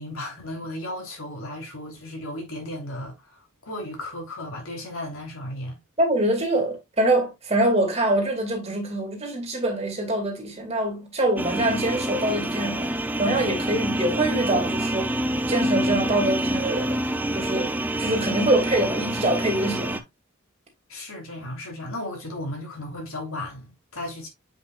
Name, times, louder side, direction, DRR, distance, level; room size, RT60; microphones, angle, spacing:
voice 1, 0.0-3.4 3.6-5.8 20.9-24.3, left 1 dB, 80° left, 3.2 m, -35 dB
voice 2, 6.0-12.9 13.2-15.1 15.5-17.0 17.3-20.0, right 1 dB, 30° right, 2.4 m, -24 dB
sound 1, 11.4-20.0, right 1 dB, 10° right, 0.5 m, -27 dB
8.0 x 5.4 x 2.4 m
head